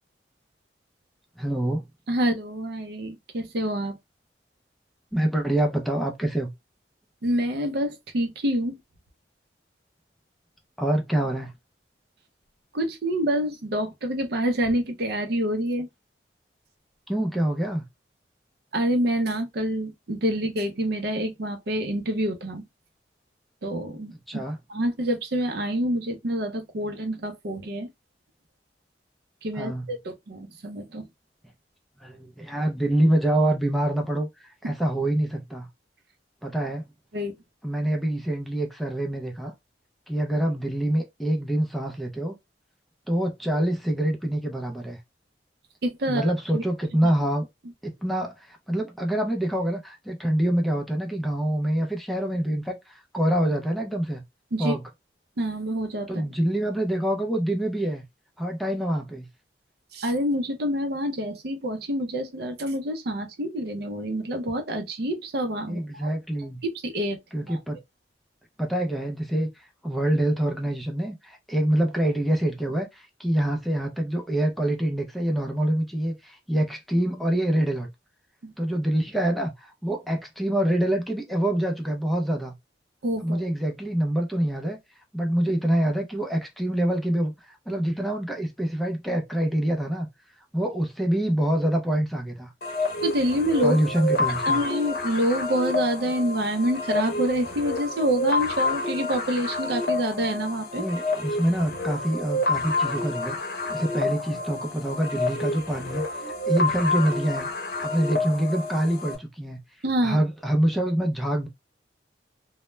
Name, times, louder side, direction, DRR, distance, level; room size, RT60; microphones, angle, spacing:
voice 1, 1.4-1.8 5.1-6.5 10.8-11.5 17.1-17.8 24.3-24.6 29.6-29.9 32.0-35.7 36.4-36.9 37.6-39.5 40.1-42.4 43.1-45.0 46.1-47.5 47.8-54.2 54.6-54.8 56.1-58.0 58.4-59.3 65.7-66.6 67.3-67.8 68.6-77.9 78.6-82.5 83.2-84.8 85.1-90.1 90.5-92.5 93.6-94.6 100.8-107.5 107.8-109.6 110.0-111.5, right 1 dB, ahead, 0.4 m, -26 dB
voice 2, 2.1-3.9 7.2-8.8 12.7-15.9 18.7-22.6 23.6-24.4 24.7-27.9 29.4-31.1 34.6-34.7 37.1-37.4 45.8-46.6 54.5-54.7 55.4-56.3 59.9-66.1 66.6-67.6 78.4-78.5 83.0-83.4 93.0-93.8 94.5-100.8 109.8-110.2, equal, 60° right, 0.5 m, -27 dB
sound 1, 92.6-109.2, left 2 dB, 55° left, 0.7 m, -29 dB
2.2 x 2.1 x 3.0 m
head